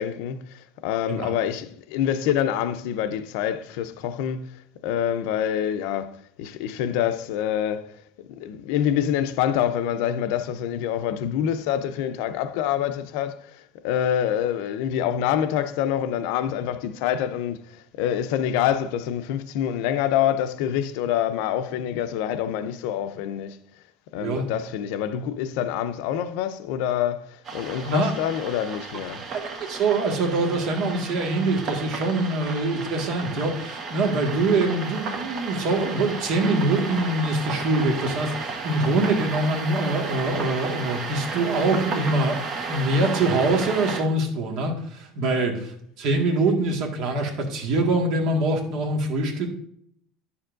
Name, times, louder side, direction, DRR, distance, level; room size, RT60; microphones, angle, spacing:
voice 1, 0.0-7.9 8.2-23.6 24.1-29.2 45.3-45.5, left 10 dB, 70° left, 0.6 m, -26 dB
sound 1, 27.4-44.0, right 4 dB, 30° right, 1.1 m, -33 dB
voice 2, 29.3-42.4 42.7-49.5, right 2 dB, 50° right, 1.6 m, -24 dB
9.8 x 7.0 x 2.5 m
cardioid pair, 160°, 0 cm